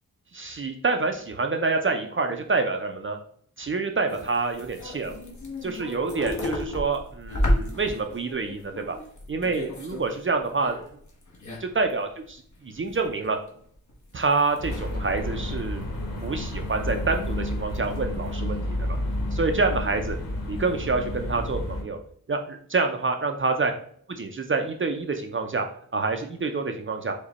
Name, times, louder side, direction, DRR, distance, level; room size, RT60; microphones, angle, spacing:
voice 1, 0.3-3.2 3.6-5.2 5.6-9.0 9.3-10.8 11.6-13.4 14.1-15.8 16.2-19.0 19.3-20.2 20.5-22.0 22.3-23.7 24.2-25.7 25.9-27.1, right 4 dB, 35° right, 5 dB, 0.5 m, -27 dB
sound 1, 4.1-10.1 10.4-11.9 12.3-12.4 12.7-13.2 13.5-15.2 15.6-16.3 16.7-17.5 17.7-18.3, left 1 dB, 55° left, 1.2 m, -33 dB
sound 2, 14.6-21.8, left 1 dB, 80° left, 1.3 m, -30 dB
5.0 x 2.2 x 4.0 m, 0.62 s
wide cardioid pair, 120°, 34 cm